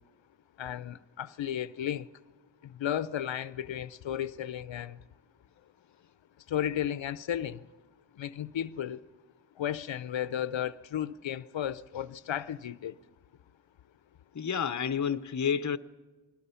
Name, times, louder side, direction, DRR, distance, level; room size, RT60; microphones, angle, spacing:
voice 1, 0.6-2.1 2.6-5.0 6.5-7.7 8.1-9.1 9.6-13.0, left 10 dB, 75° left, 0.6 m, -34 dB
voice 2, 14.3-15.8, left 7 dB, 40° left, 0.7 m, -29 dB
28.5 x 22.0 x 5.6 m
wide cardioid pair, 95°, 45 cm